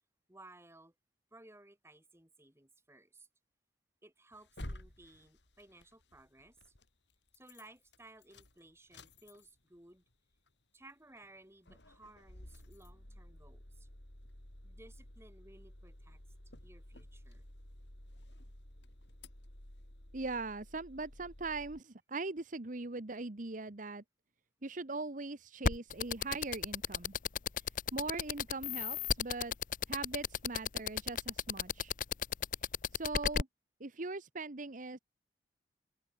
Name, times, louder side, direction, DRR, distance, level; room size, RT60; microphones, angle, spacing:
voice 1, 0.3-0.9 1.3-3.3 4.0-6.7 7.3-10.0 10.7-13.9 14.6-16.2 16.6-17.4, right 2 dB, 15° right, 4.6 m, -58 dB
sound 1, 4.3-6.9 7.3-7.7 7.9-9.8 10.1-10.2 10.5-10.6 11.2-11.4 11.7-21.8, left 1 dB, 75° left, 4.2 m, -53 dB
voice 2, 20.1-24.0 24.6-27.1 27.9-29.5 29.9-31.9 32.9-33.5 33.8-35.0, right 3 dB, 45° right, 1.2 m, -40 dB
sound 2, 25.6-33.4, left 7 dB, 50° left, 0.7 m, -33 dB
open air
head